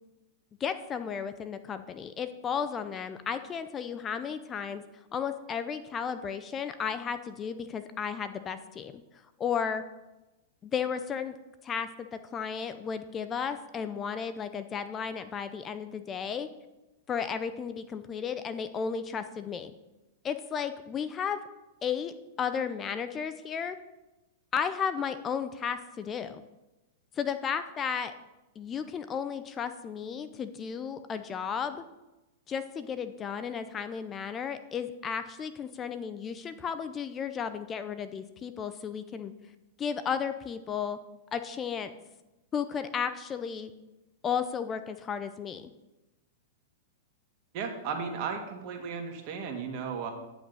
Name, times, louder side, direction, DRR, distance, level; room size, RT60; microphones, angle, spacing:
voice 1, 0.6-4.8 5.1-8.9 9.4-9.8 10.6-11.3 11.6-16.5 17.1-19.7 20.2-21.4 21.8-23.8 24.5-26.4 27.1-28.1 28.6-31.8 32.5-39.3 39.8-41.0 41.3-41.9 42.5-43.7 44.2-45.7, left 7 dB, 25° left, 11 dB, 0.5 m, -34 dB
voice 2, 47.5-50.1, right 6 dB, 50° right, 3 dB, 1.9 m, -35 dB
9.9 x 6.1 x 5.5 m, 1.0 s
hypercardioid pair, 120°, 0 cm